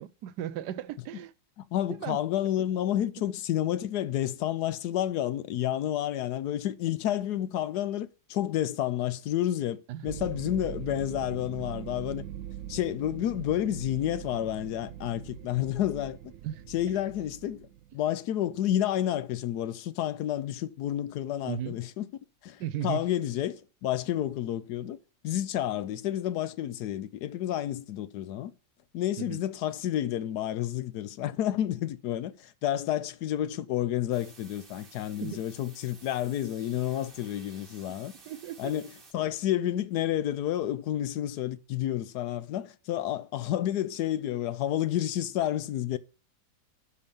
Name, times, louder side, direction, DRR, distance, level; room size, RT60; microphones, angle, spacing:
voice 1, 0.0-1.3 2.0-2.2 9.9-10.1 16.4-16.6 21.5-21.8 22.6-23.0 29.2-29.4 35.2-35.4 38.3-38.7, right 12 dB, 85° right, 1.3 m, -35 dB
voice 2, 1.7-12.3 12.7-16.2 16.7-17.7 17.9-22.1 22.4-25.0 25.2-28.5 28.9-38.1 38.6-38.9 39.1-46.0, left 12 dB, 80° left, 1.2 m, -30 dB
sound 1, 10.0-18.0, right 11 dB, 65° right, 0.9 m, -42 dB
sound 2, 34.1-39.1, right 4 dB, 35° right, 1.5 m, -53 dB
12.5 x 4.6 x 5.3 m
omnidirectional pair, 1.7 m